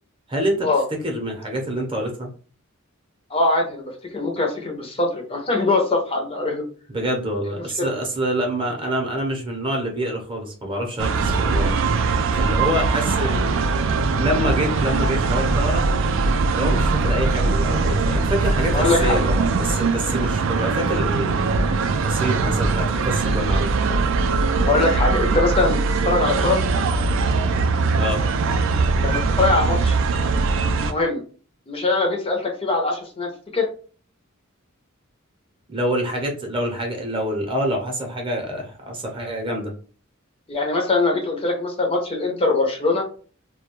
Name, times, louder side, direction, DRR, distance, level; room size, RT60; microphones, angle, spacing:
voice 1, 0.3-0.7 1.0-2.3 6.9-11.7 12.4-15.9 16.5-21.4 22.0-23.7 27.9-28.2 35.7-39.7, equal, 25° right, 1 dB, 0.6 m, -26 dB
voice 2, 3.3-6.6 7.8-7.9 18.7-19.2 24.7-26.6 29.0-30.0 30.8-31.2 31.7-33.7 40.5-43.0, left 3 dB, 25° left, 2 dB, 0.5 m, -22 dB
sound 1, 11.0-30.9, right 4 dB, 65° right, 0.3 m, -21 dB
2.3 x 2.1 x 2.9 m, 0.40 s
head